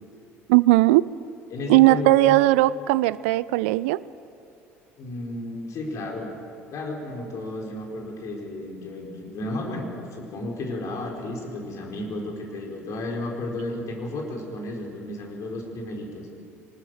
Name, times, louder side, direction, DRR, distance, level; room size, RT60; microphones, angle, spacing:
voice 1, 0.5-1.1 1.7-4.0, right 18 dB, 65° right, 20 dB, 0.4 m, -18 dB
voice 2, 1.5-2.4 5.0-6.3 6.7-9.9 10.1-16.3, left 2 dB, 45° left, 1 dB, 4.3 m, -33 dB
24.0 x 19.5 x 6.5 m, 2.8 s
figure-of-eight pair, 60°, 7 cm